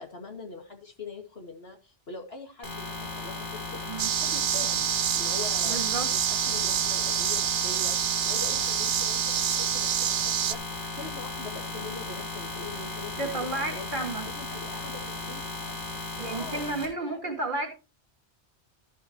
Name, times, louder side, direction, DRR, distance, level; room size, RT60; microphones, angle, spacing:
voice 1, 0.0-3.8 4.1-4.9 5.1-5.8 6.1-13.9 14.2-15.4 16.3-17.5, left 3 dB, 65° left, 2 dB, 2.4 m, -43 dB
sound 1, 2.6-16.8, left 2 dB, 85° left, 3.6 m, -36 dB
sound 2, 4.0-10.5, right 10 dB, 85° right, 1.0 m, -27 dB
voice 2, 5.6-6.1 13.2-14.3 16.2-17.7, right 2 dB, 45° right, 4 dB, 2.4 m, -32 dB
14.0 x 7.5 x 3.1 m, 0.31 s
omnidirectional pair, 1.2 m